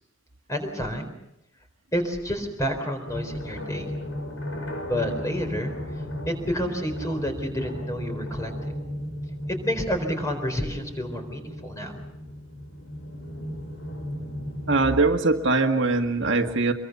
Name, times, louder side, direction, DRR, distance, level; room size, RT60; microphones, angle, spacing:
voice 1, 0.5-1.2 1.9-3.9 4.9-6.0 6.3-8.5 9.5-12.0, equal, 15° left, 5 dB, 4.2 m, -29 dB
sound 1, 3.1-14.9, left 1 dB, 80° left, 5.9 m, -35 dB
voice 2, 14.7-16.7, right 3 dB, 65° right, 4 dB, 1.8 m, -22 dB
24.5 x 23.0 x 6.8 m, 0.84 s
head